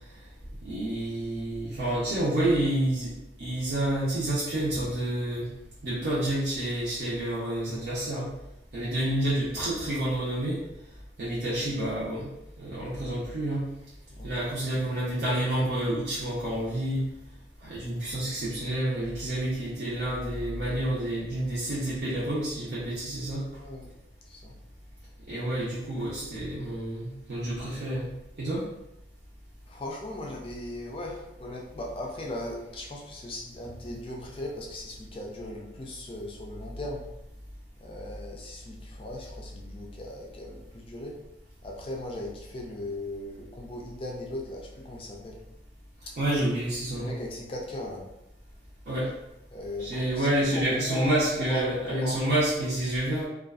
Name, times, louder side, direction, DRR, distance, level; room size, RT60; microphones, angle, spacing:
voice 1, 0.6-3.1 3.4-5.5 5.8-8.3 8.7-10.6 11.2-12.3 12.6-13.6 14.2-17.0 17.6-23.4 25.3-28.1 28.4-28.6 46.2-47.2 48.9-49.1 49.8-53.3, right 1 dB, 60° right, -10 dB, 0.6 m, -29 dB
voice 2, 14.1-14.9 23.6-23.9 24.3-24.6 29.7-37.1 37.8-41.2 41.6-45.4 46.1-46.2 47.0-48.1 49.5-50.3 50.5-52.2, left 1 dB, 30° left, -1 dB, 0.4 m, -38 dB
2.4 x 2.3 x 2.3 m, 0.88 s
head